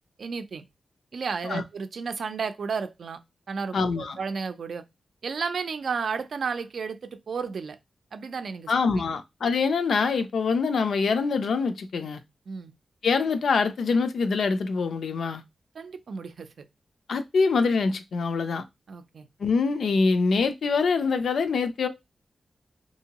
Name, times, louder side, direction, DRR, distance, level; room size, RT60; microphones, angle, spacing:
voice 1, 0.2-0.6 1.1-3.2 3.5-4.8 5.2-7.8 8.1-8.7 12.5-12.7 15.7-16.5 18.9-19.3, right 5 dB, 70° right, 0.4 m, -32 dB
voice 2, 3.7-4.2 8.7-12.2 13.0-15.4 17.1-18.6 19.4-21.9, left 4 dB, 85° left, 0.4 m, -24 dB
3.6 x 2.7 x 2.9 m
wide cardioid pair, 145°, 0 cm